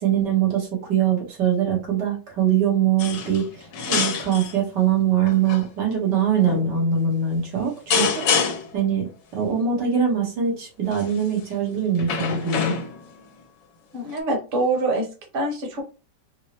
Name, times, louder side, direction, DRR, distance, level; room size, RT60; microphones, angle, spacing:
voice 1, 0.0-8.2 8.7-12.8, right 7 dB, 75° right, -2 dB, 1.9 m, -22 dB
sound 1, 3.0-3.5 3.7-4.6 5.3-5.6 6.5-6.7 7.9-8.8 10.9-11.2 12.0-13.1 14.2-14.3, left 6 dB, 85° left, 1.4 m, -25 dB
voice 2, 13.9-15.1 15.3-15.8, right 2 dB, 40° right, 1 dB, 1.0 m, -24 dB
4.4 x 2.0 x 2.9 m, 0.33 s
omnidirectional pair, 1.9 m